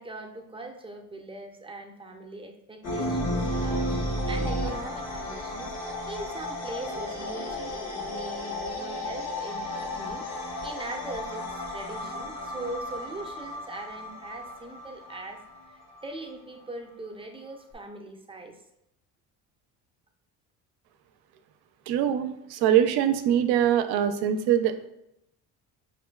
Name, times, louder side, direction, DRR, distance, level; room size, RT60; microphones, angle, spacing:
voice 1, 0.0-5.7 6.1-18.6, right 2 dB, 15° right, 2 dB, 0.5 m, -41 dB
sound 1, 2.8-16.2, left 1 dB, 70° left, 1.2 m, -33 dB
voice 2, 21.9-24.9, right 10 dB, 65° right, 9 dB, 0.5 m, -23 dB
5.0 x 2.6 x 2.2 m, 0.83 s
supercardioid pair, 70°, 41 cm